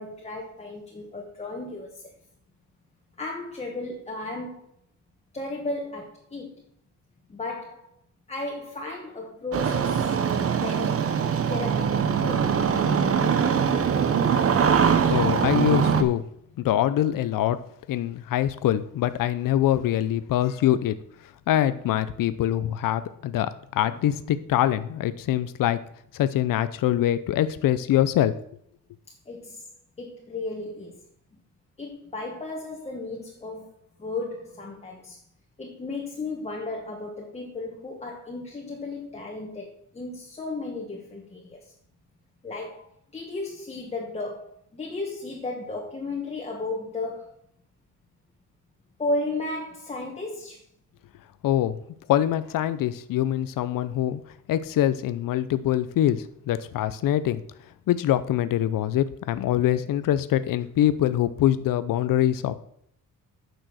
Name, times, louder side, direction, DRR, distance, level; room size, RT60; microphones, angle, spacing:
voice 1, 0.0-2.1 3.2-4.7 5.3-6.7 7.3-7.9 8.3-11.1 11.5-12.6 29.1-29.7 30.0-31.0 31.8-35.2 35.6-41.7 42.4-47.3 49.0-50.6, left 2 dB, 20° left, 0 dB, 1.3 m, -34 dB
Engine starting, 9.5-16.0, right 7 dB, 45° right, 0.9 m, -22 dB
voice 2, 15.1-16.2 16.6-17.6 17.9-21.0 21.5-25.8 26.1-28.3 51.4-51.8 52.1-54.2 54.5-57.4 57.9-62.6, left 12 dB, 85° left, 13 dB, 0.6 m, -24 dB
9.2 x 6.2 x 6.3 m, 0.68 s
wide cardioid pair, 155°, 32 cm